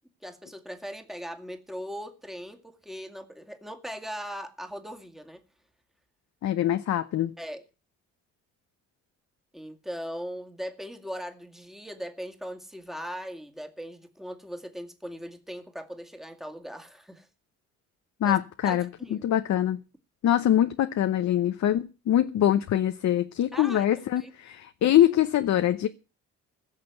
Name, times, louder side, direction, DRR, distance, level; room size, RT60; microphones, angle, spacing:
voice 1, 0.2-5.4 7.4-7.6 9.5-17.3 18.2-18.4 18.6-19.3 23.5-23.9 24.2-24.3, equal, ahead, 2.0 m, -39 dB
voice 2, 6.4-7.3 18.2-18.9 19.2-19.8 20.2-25.9, left 11 dB, 65° left, 0.9 m, -24 dB
16.5 x 6.6 x 7.9 m
cardioid pair, 90°, 30 cm